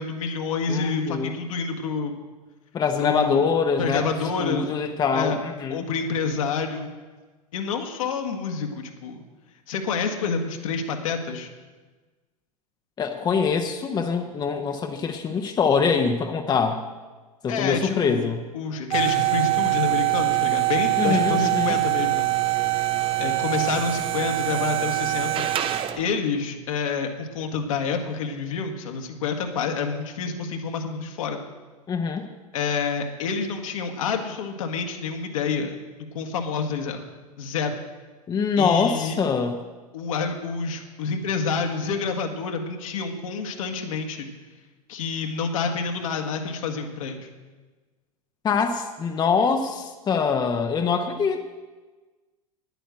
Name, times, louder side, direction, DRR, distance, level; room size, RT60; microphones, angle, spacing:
voice 1, 0.0-2.1 3.0-3.4 3.8-4.7 5.1-5.4 5.7-6.9 7.5-9.2 9.7-11.5 17.5-22.3 23.2-31.4 32.5-35.8 36.1-37.0 37.4-37.8 38.6-39.2 39.9-44.3 44.9-47.3, left 5 dB, 60° left, 4 dB, 1.6 m, -28 dB
voice 2, 0.7-1.3 2.7-5.8 13.0-16.9 17.4-18.4 21.0-21.8 31.9-32.3 38.3-39.6 48.4-51.4, left 5 dB, 20° left, 5 dB, 0.9 m, -24 dB
sound 1, 18.9-26.1, right 17 dB, 30° right, 0.8 m, -24 dB
10.5 x 9.0 x 7.6 m, 1.3 s
figure-of-eight pair, 85°, 19 cm